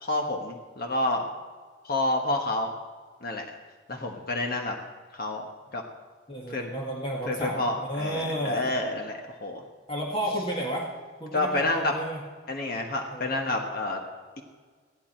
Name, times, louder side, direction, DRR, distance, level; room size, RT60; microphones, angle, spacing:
voice 1, 0.0-1.3 1.8-2.7 3.2-3.4 3.9-4.7 5.1-5.8 6.5-6.7 7.3-9.6 11.3-11.9 12.5-14.0, left 2 dB, 50° left, 2 dB, 1.3 m, -29 dB
voice 2, 6.3-8.7 9.9-10.9 11.2-12.2 13.1-13.7, right 1 dB, 30° left, -2 dB, 1.8 m, -32 dB
15.5 x 11.5 x 4.5 m, 1.5 s
head